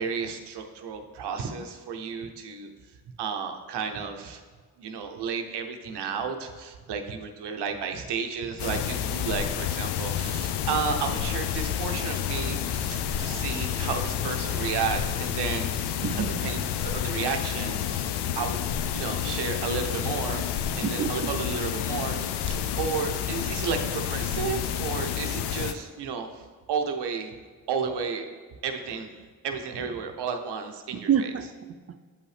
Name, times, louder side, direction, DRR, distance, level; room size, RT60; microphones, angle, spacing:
voice 1, 0.0-2.7 3.2-4.4 4.8-16.0 16.4-20.4 20.8-27.3 27.7-28.3 28.6-29.1 29.4-31.3, right 6 dB, 85° right, 5 dB, 0.7 m, -32 dB
sound 1, 8.6-25.7, left 9 dB, 80° left, 0.5 m, -29 dB
voice 2, 16.0-16.6 20.8-21.3 30.9-32.0, right 8 dB, 40° right, 11 dB, 0.5 m, -28 dB
7.4 x 5.5 x 3.3 m, 1.5 s
supercardioid pair, 40°, 40 cm